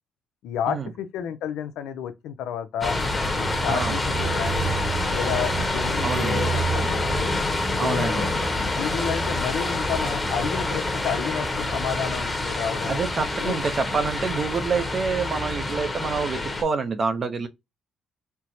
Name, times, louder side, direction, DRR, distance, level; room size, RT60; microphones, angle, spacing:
voice 1, 0.4-3.0 3.4-4.7 5.1-7.3 7.7-8.3 8.8-13.0 13.4-13.6, left 9 dB, 90° left, 0.5 m, -31 dB
sound 1, 2.8-16.6, left 1 dB, 20° left, 1.0 m, -26 dB
voice 2, 6.0-6.5 7.8-8.3 12.9-17.5, right 5 dB, 45° right, 0.6 m, -27 dB
4.4 x 2.1 x 2.6 m
cardioid pair, 90°, 0 cm